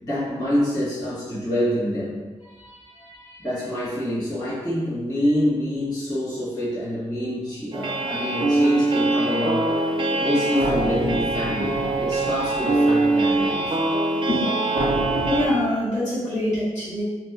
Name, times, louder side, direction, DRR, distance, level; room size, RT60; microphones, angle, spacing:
voice 1, 0.0-2.2 3.4-9.9 10.2-13.8, equal, 30° left, -12 dB, 1.3 m, -26 dB
voice 2, 2.6-3.4 14.3-14.5 15.3-17.0, left 1 dB, 80° left, -13 dB, 1.2 m, -26 dB
sound 1, 7.7-15.5, right 2 dB, 45° right, 0.4 m, -22 dB
2.8 x 2.1 x 2.3 m, 1.3 s
wide cardioid pair, 85°, 12 cm